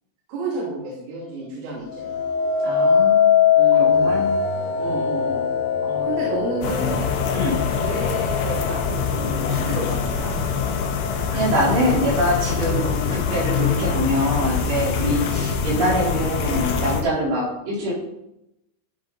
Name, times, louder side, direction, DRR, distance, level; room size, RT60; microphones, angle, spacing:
voice 1, 0.3-2.2 3.6-4.2 4.8-5.5 6.0-7.1 7.8-10.4 12.6-12.9 15.1-15.3, right 2 dB, 90° right, -5 dB, 5.3 m, -31 dB
sound 1, 1.9-11.1 11.6-12.1, left 7 dB, 85° left, 3.1 m, -22 dB
voice 2, 2.6-3.4 3.7-4.4 5.8-6.1 7.3-7.6 11.3-17.9, equal, 60° right, -5 dB, 6.3 m, -24 dB
sound 2, 6.6-17.0, left 6 dB, 65° left, 2.9 m, -24 dB
16.0 x 7.6 x 4.1 m, 0.85 s
omnidirectional pair, 5.5 m